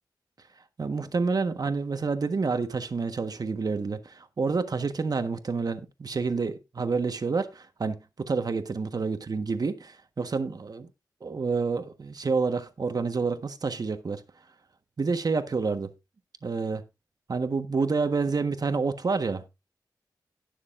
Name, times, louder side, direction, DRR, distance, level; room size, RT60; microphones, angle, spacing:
voice 1, 0.8-10.9 11.2-14.2 15.0-15.9 16.4-16.8 17.3-19.4, right 4 dB, 60° right, 1.4 m, -28 dB
18.0 x 6.6 x 2.6 m
cardioid pair, 55°, 7 cm